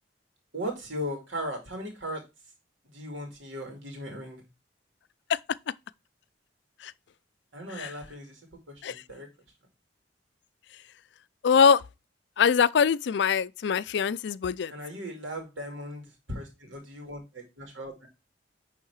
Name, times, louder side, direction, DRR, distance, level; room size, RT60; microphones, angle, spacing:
voice 1, 0.5-2.2 2.9-4.4 7.5-8.4 8.7-9.3 14.7-18.1, equal, 90° right, 2.3 m, -37 dB
voice 2, 11.4-11.8 12.4-14.7, left 6 dB, 65° left, 0.4 m, -23 dB
10.5 x 3.5 x 4.7 m
head